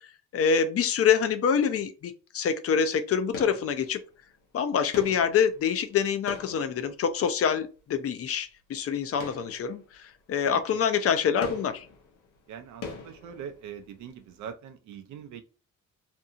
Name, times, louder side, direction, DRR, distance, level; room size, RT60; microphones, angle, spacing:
voice 1, 0.3-4.0 4.5-11.9, left 7 dB, 50° left, 0.5 m, -26 dB
sound 1, 3.3-4.2 4.9-7.5 9.1-10.1 10.5-10.6 11.4-14.0 14.2-14.3, left 4 dB, 85° left, 0.7 m, -42 dB
voice 2, 12.5-15.4, right 8 dB, 75° right, 0.5 m, -42 dB
2.6 x 2.6 x 2.4 m
cardioid pair, 90°, 30 cm